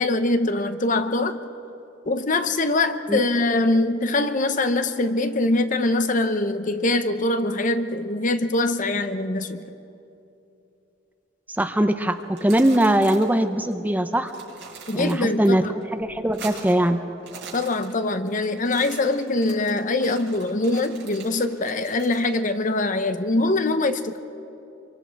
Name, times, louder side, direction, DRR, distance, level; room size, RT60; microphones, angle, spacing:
voice 1, 0.0-1.4 2.1-9.7 14.9-15.7 17.5-24.2, left 2 dB, 45° left, 10 dB, 0.8 m, -23 dB
voice 2, 11.6-14.3 14.9-15.7 15.9-17.0, right 1 dB, 10° right, 8 dB, 0.7 m, -21 dB
sound 1, 12.2-13.4 13.7-13.8 14.1-15.5 15.8-16.9 17.2-18.3 18.6-22.3, right 6 dB, 65° right, 5.3 m, -42 dB
27.0 x 24.0 x 4.7 m, 2.8 s
head